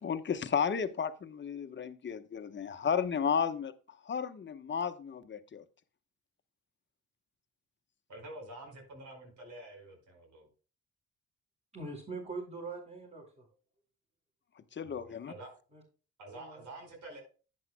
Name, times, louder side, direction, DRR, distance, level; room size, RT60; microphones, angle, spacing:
voice 1, 0.0-5.6 14.7-15.3, left 7 dB, 40° left, 9 dB, 1.0 m, -33 dB
voice 2, 8.1-10.5 14.8-15.6 16.2-17.2, right 1 dB, 75° right, 3 dB, 4.8 m, -48 dB
voice 3, 11.7-13.5 15.7-15.8 16.3-16.6, right 3 dB, 20° right, -4 dB, 5.1 m, -42 dB
11.0 x 9.6 x 2.2 m, 0.35 s
cardioid pair, 90°, 30 cm